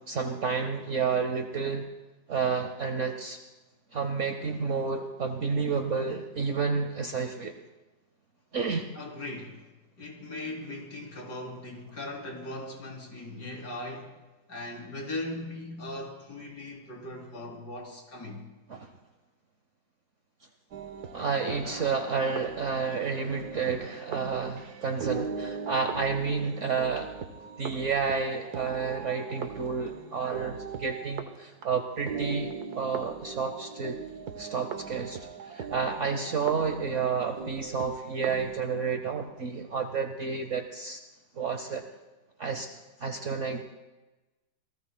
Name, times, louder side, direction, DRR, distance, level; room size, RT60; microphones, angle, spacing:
voice 1, 0.0-1.9 2.3-3.4 3.9-7.5 8.5-8.9 18.7-18.9 21.1-27.1 27.6-34.0 34.4-41.0 41.4-41.8 42.4-42.7 43.0-43.6, right 5 dB, 50° right, 1.1 m, -30 dB
voice 2, 9.0-9.6 10.0-14.2 14.5-18.5, left 1 dB, 75° left, 3.6 m, -39 dB
sound 1, 20.7-31.6 31.9-38.6, right 6 dB, 70° right, 1.5 m, -39 dB
28.0 x 18.5 x 2.2 m
omnidirectional pair, 1.8 m